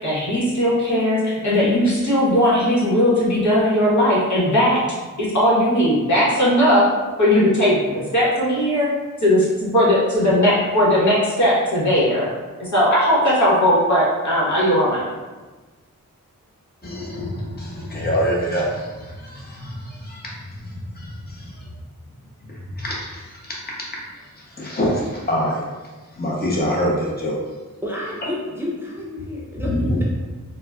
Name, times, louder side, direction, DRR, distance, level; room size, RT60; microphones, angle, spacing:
voice 1, 0.0-4.8 5.2-6.8 7.2-8.9 9.2-12.3 12.6-15.0, equal, 60° left, -7 dB, 1.3 m, -18 dB
voice 2, 16.8-21.7 22.5-24.0 24.4-25.6 26.1-27.4 29.6-30.0, equal, 30° left, -4 dB, 0.9 m, -26 dB
voice 3, 27.8-30.0, left 1 dB, 5° right, -5 dB, 0.7 m, -30 dB
3.9 x 2.1 x 2.4 m, 1.2 s
cardioid pair, 40°, 33 cm